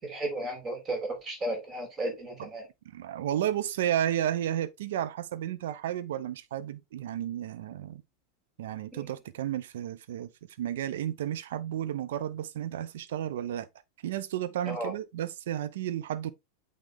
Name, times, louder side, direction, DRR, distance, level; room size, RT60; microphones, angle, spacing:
voice 1, 0.0-2.6 8.9-9.1 14.7-14.9, right 1 dB, 25° right, 3.4 m, -34 dB
voice 2, 2.8-8.0 8.6-10.3 10.6-13.7 14.0-16.3, right 11 dB, 55° right, 0.7 m, -32 dB
8.9 x 3.6 x 3.6 m
figure-of-eight pair, 90°, 0 cm